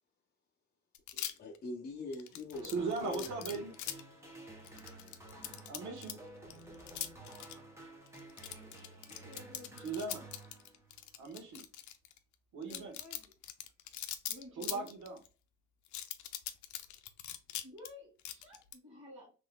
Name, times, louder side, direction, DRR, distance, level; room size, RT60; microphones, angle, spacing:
sound 1, 0.9-1.6 2.1-4.0 4.6-6.1 6.5-7.5 8.1-12.2 12.6-15.3 15.9-17.9 18.2-18.7, left 12 dB, 70° left, 0.6 m, -42 dB
voice 1, 1.1-3.3, left 2 dB, 30° left, 0.7 m, -43 dB
sound 2, 2.5-11.1, right 2 dB, 10° right, 1.1 m, -52 dB
voice 2, 2.6-3.7 5.7-6.2 9.8-10.2 11.2-11.6 12.5-12.9 14.6-15.2, right 4 dB, 75° right, 1.3 m, -38 dB
voice 3, 9.0-9.9 12.7-13.3 14.3-14.9 17.6-19.3, left 1 dB, 45° right, 1.8 m, -53 dB
3.6 x 3.2 x 2.3 m
cardioid pair, 110°, 30 cm